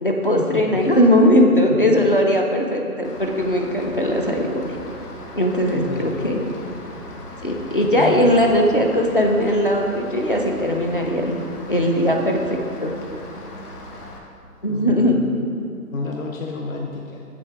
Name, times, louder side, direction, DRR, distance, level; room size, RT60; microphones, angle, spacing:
voice 1, 0.0-4.8 5.4-6.4 7.4-11.4 11.7-12.9 14.6-15.2, equal, 35° left, 1 dB, 0.5 m, -19 dB
Rain, 3.0-14.2, left 1 dB, 85° left, 1.6 m, -38 dB
voice 2, 5.6-6.4 7.8-8.2 14.7-15.5 15.9-17.2, left 4 dB, 60° left, 1 dB, 0.8 m, -31 dB
7.4 x 6.1 x 4.6 m, 2.6 s
hypercardioid pair, 175°, 46 cm